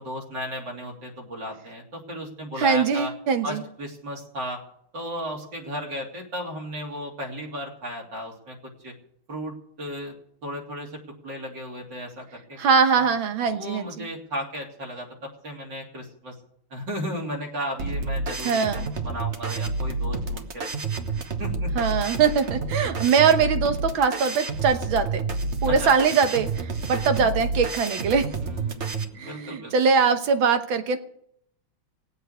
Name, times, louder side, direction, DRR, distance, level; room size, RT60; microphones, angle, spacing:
voice 1, 0.0-3.1 3.4-4.6 4.9-8.9 9.3-10.1 10.4-12.6 12.9-13.1 13.5-16.3 16.7-20.9 21.4-21.7 25.7-25.9 28.4-29.7, equal, 60° right, 0 dB, 3.8 m, -35 dB
voice 2, 2.6-3.6 12.6-14.1 18.4-18.9 21.7-25.3 25.6-28.3 29.2-31.0, right 5 dB, 75° right, 8 dB, 1.9 m, -22 dB
sound 1, 17.8-29.0, right 3 dB, 40° right, 1.2 m, -29 dB
19.0 x 8.1 x 8.2 m, 0.71 s
omnidirectional pair, 2.2 m